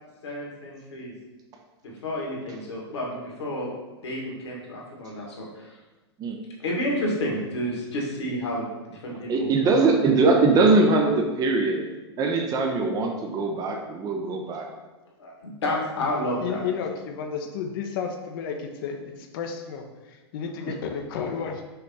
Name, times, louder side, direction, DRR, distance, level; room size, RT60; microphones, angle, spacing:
voice 1, 0.2-1.2 1.8-3.7 4.0-5.8 6.6-9.8 15.2-16.6, left 1 dB, 70° left, -2 dB, 2.1 m, -30 dB
voice 2, 9.3-11.8 12.2-14.7, right 3 dB, 25° right, 2 dB, 0.8 m, -21 dB
voice 3, 16.4-21.6, left 6 dB, 55° left, 4 dB, 0.9 m, -32 dB
5.7 x 3.4 x 5.5 m, 1.2 s
hypercardioid pair, 110°, 14 cm